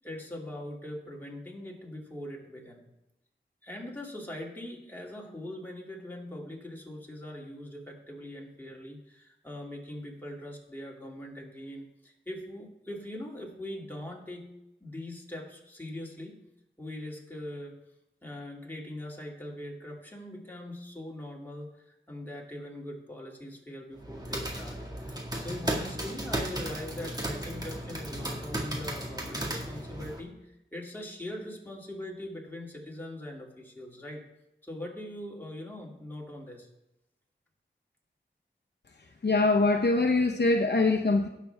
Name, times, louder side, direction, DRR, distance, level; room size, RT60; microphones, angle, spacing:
voice 1, 0.0-2.8 3.6-14.5 14.8-16.4 16.8-17.8 18.2-34.2 34.6-36.7, left 1 dB, 10° left, -2 dB, 2.7 m, -41 dB
sound 1, 24.0-30.2, right 1 dB, 20° right, 1.9 m, -35 dB
voice 2, 39.2-41.3, left 3 dB, 65° left, 2 dB, 0.9 m, -23 dB
17.5 x 6.9 x 3.5 m, 0.88 s
wide cardioid pair, 75°, 19 cm